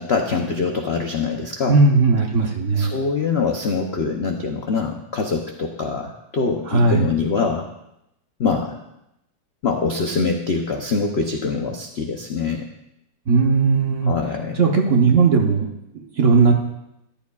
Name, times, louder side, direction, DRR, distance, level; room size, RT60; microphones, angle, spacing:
voice 1, 0.0-1.8 2.8-7.7 8.4-8.8 9.6-12.7 14.0-14.7, left 4 dB, 70° left, 3 dB, 0.6 m, -24 dB
voice 2, 1.7-2.9 6.7-7.0 13.3-14.1 14.5-16.6, right 4 dB, 50° right, 1 dB, 1.1 m, -17 dB
14.0 x 11.0 x 2.4 m, 0.84 s
omnidirectional pair, 2.1 m